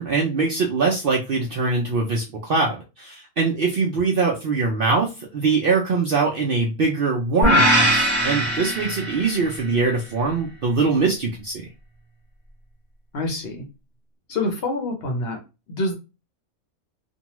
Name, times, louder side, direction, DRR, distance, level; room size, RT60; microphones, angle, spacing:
voice 1, 0.0-11.6, right 4 dB, 70° right, -1 dB, 0.5 m, -22 dB
sound 1, 7.4-9.6, equal, 10° right, 0.7 m, -20 dB
voice 2, 13.1-13.6 14.3-15.4 15.7-15.9, left 2 dB, 50° left, 1 dB, 0.9 m, -26 dB
2.6 x 2.3 x 2.9 m, 0.28 s
omnidirectional pair, 1.6 m